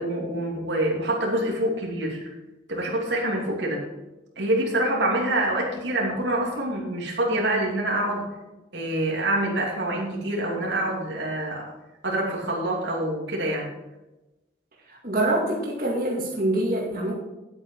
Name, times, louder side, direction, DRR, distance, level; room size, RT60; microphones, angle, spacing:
voice 1, 0.0-2.2 2.7-3.8 4.4-8.3 8.7-11.7 12.0-13.7, right 1 dB, 90° right, -2 dB, 2.7 m, -26 dB
voice 2, 15.0-17.1, right 1 dB, 50° right, -3 dB, 2.0 m, -25 dB
9.9 x 8.6 x 4.5 m, 1.0 s
head